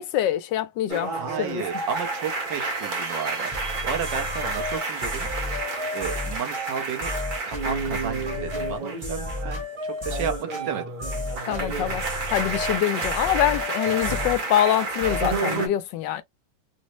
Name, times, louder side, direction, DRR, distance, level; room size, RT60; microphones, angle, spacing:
voice 1, 0.0-1.6 11.4-12.0 12.3-16.2, left 12 dB, 80° left, 1.2 m, -25 dB
sound 1, 0.9-9.6 9.9-15.7, right 3 dB, 50° right, 0.6 m, -30 dB
voice 2, 1.2-3.5 3.8-5.3 5.9-7.1 7.4-10.9, right 7 dB, 75° right, 1.5 m, -32 dB
sound 2, 3.5-15.4, left 1 dB, 20° right, 0.8 m, -32 dB
3.9 x 2.0 x 3.0 m
omnidirectional pair, 2.0 m